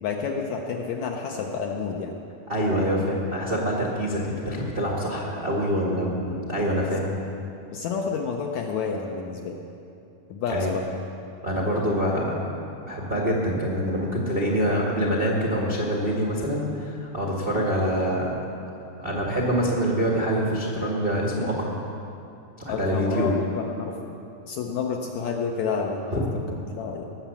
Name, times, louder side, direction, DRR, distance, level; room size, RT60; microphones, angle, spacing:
voice 1, 0.0-2.2 7.7-9.6 10.3-10.8 22.7-23.3 23.8-24.2 24.5-26.1 26.7-27.1, left 5 dB, 75° left, 1 dB, 1.7 m, -29 dB
voice 2, 2.5-7.1 10.5-10.7 11.4-12.4 12.8-18.4 18.9-21.7 22.6-23.3 26.1-26.3, equal, 60° right, -3 dB, 0.5 m, -25 dB
19.0 x 7.2 x 7.0 m, 2.7 s
omnidirectional pair, 4.1 m